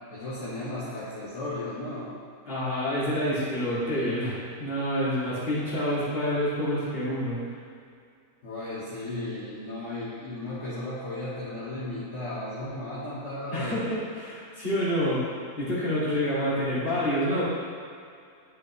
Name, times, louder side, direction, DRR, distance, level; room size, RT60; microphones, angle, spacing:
voice 1, 0.1-2.1 8.4-13.8, left 1 dB, 60° left, -10 dB, 1.7 m, -35 dB
voice 2, 2.5-7.4 13.5-15.2 15.6-17.4, equal, 40° left, -9 dB, 2.4 m, -27 dB
10.5 x 6.1 x 3.2 m, 2.4 s
omnidirectional pair, 1.5 m